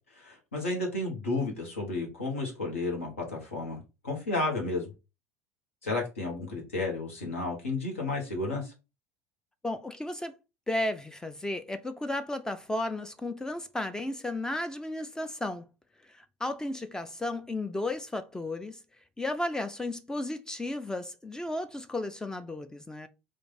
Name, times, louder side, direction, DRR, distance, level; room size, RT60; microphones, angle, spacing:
voice 1, 0.1-4.9 5.8-8.7, left 2 dB, 75° left, 1.2 m, -32 dB
voice 2, 9.6-10.4 10.7-15.7 16.1-18.8 19.2-23.1, left 1 dB, 10° left, 0.3 m, -34 dB
3.2 x 2.5 x 4.0 m
figure-of-eight pair, 70°, 7 cm